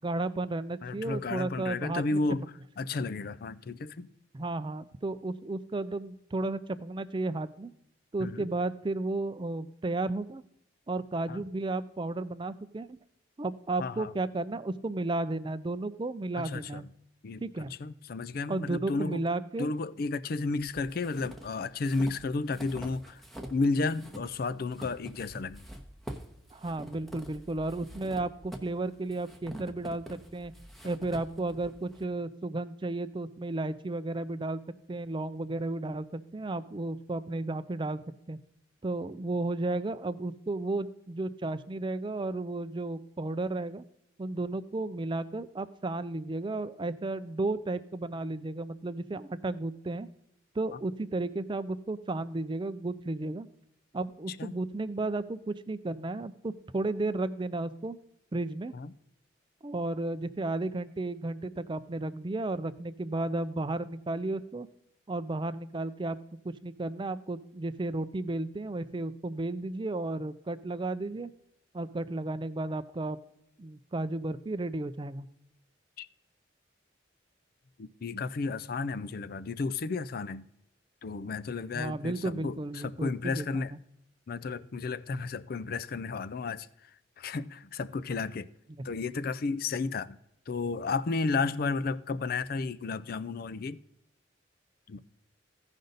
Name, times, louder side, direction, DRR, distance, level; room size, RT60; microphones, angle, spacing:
voice 1, 0.0-2.2 4.3-7.7 8.1-10.4 10.9-13.0 13.4-16.9 17.4-17.7 18.5-19.7 26.5-30.5 30.8-34.6 34.9-38.0 38.3-38.4 38.8-43.8 44.2-50.1 50.6-53.5 53.9-58.0 58.3-58.7 59.6-64.7 65.1-66.2 66.4-71.3 71.7-73.2 73.6-75.3 81.7-83.8, right 2 dB, 25° right, 0.4 m, -33 dB
voice 2, 0.8-4.1 8.2-8.5 11.3-11.4 13.8-14.1 16.4-16.9 17.2-17.4 17.8-19.2 19.6-23.2 23.5-25.7 50.7-50.8 54.3-54.6 58.7-58.9 76.0-76.1 77.8-80.5 81.0-83.7 84.3-86.7 87.2-88.5 88.8-90.2 90.5-93.8 94.9-95.0, left 3 dB, 50° left, 0.4 m, -32 dB
sound 1, 20.6-23.6 23.9-32.0, equal, ahead, 0.9 m, -46 dB
15.5 x 5.3 x 3.9 m
head